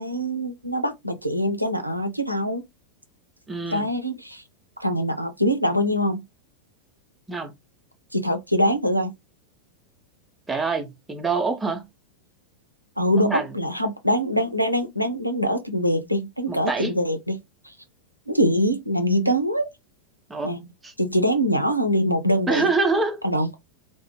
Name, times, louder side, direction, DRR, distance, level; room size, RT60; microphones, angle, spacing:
voice 1, 0.0-2.6 3.7-4.4 4.8-6.2 8.1-9.1 13.0-17.4 17.6-17.7 18.3-19.7 20.4-20.7 21.0-22.7 23.2-23.5, equal, 90° right, 0.4 m, -23 dB
voice 2, 3.5-3.9 7.3-7.5 10.5-11.9 13.2-13.5 16.5-16.9 20.3-20.5 20.8-20.9 22.5-23.2, right 4 dB, 10° right, 0.6 m, -25 dB
2.3 x 2.2 x 3.0 m
figure-of-eight pair, 90°, 0 cm